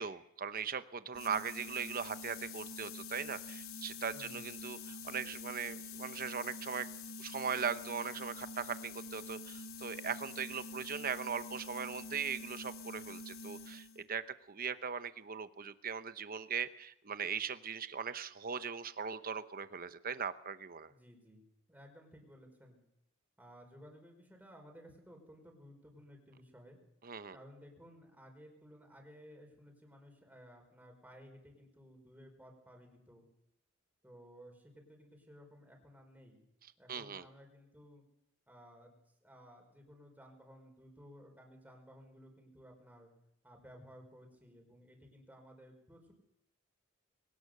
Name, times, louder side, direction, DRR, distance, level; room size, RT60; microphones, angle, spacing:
voice 1, 0.0-6.9 7.2-20.9 27.0-27.4 36.9-37.2, right 6 dB, 45° right, 12 dB, 0.9 m, -39 dB
sound 1, 1.1-14.1, left 3 dB, 80° left, 1.9 m, -46 dB
voice 2, 4.1-4.5 20.9-21.4 21.7-22.8 23.4-26.8 27.3-33.3 34.0-36.4 36.8-38.0 38.5-38.9 39.2-43.1 43.4-46.1, equal, 10° right, 3 dB, 4.9 m, -57 dB
21.5 x 18.5 x 6.7 m, 0.81 s
head